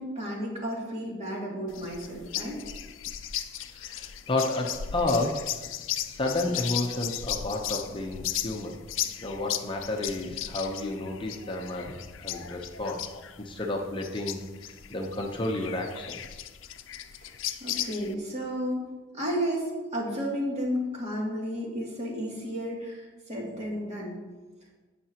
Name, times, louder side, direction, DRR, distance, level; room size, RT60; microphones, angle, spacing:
voice 1, 0.0-2.6 17.6-18.9 19.1-24.2, equal, 35° right, -4 dB, 2.6 m, -32 dB
sound 1, 1.7-18.1, left 11 dB, 85° left, 0.5 m, -36 dB
voice 2, 3.7-5.5 5.9-8.8 9.2-13.0 13.4-16.4, left 2 dB, 25° left, 1 dB, 0.8 m, -31 dB
17.0 x 5.9 x 2.9 m, 1.3 s
head